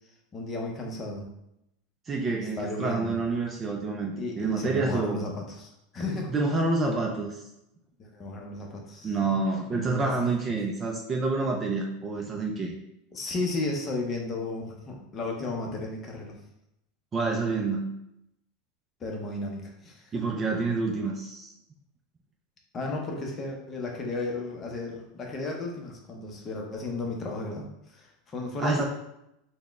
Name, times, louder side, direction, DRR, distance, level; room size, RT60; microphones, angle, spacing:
voice 1, 0.3-1.3 2.6-3.2 4.2-6.3 8.0-9.1 9.7-10.2 10.5-10.6 13.1-16.3 19.0-20.2 22.7-28.8, left 2 dB, 20° left, 0 dB, 0.6 m, -34 dB
voice 2, 2.1-5.2 6.3-7.4 9.0-12.7 17.1-17.9 20.1-21.5 28.6-28.8, right 3 dB, 20° right, 1 dB, 0.3 m, -28 dB
4.0 x 2.1 x 3.4 m, 0.84 s
supercardioid pair, 160°, 0 cm